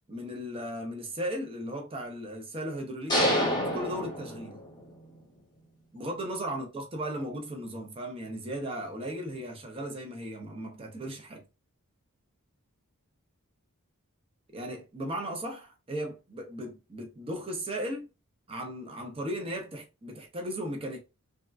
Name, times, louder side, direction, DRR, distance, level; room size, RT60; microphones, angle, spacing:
voice 1, 0.1-3.4 3.7-4.6 5.9-11.4 14.5-18.1 18.5-21.0, equal, 25° right, 0.6 m, -36 dB
sound 1, 3.1-4.9, left 1 dB, 20° left, 0.9 m, -28 dB
3.4 x 2.3 x 2.3 m
head